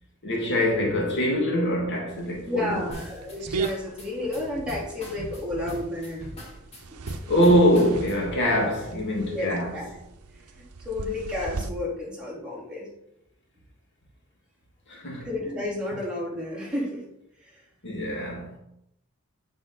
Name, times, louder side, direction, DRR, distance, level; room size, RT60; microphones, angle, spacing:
voice 1, 0.2-2.9 7.3-9.8 14.9-15.3 17.8-18.6, equal, 55° left, 1.6 m, -23 dB
sound 1, 2.1-11.7, right 4 dB, 90° right, 0.6 m, -39 dB
voice 2, 2.5-6.3 7.2-7.3 9.3-9.9 10.6-12.9 15.2-17.0 17.4-17.6, left 2 dB, 5° right, 3.0 m, -31 dB
sound 2, 2.9-8.4, equal, 30° left, 1.9 m, -40 dB
7.7 x 6.1 x 3.8 m
head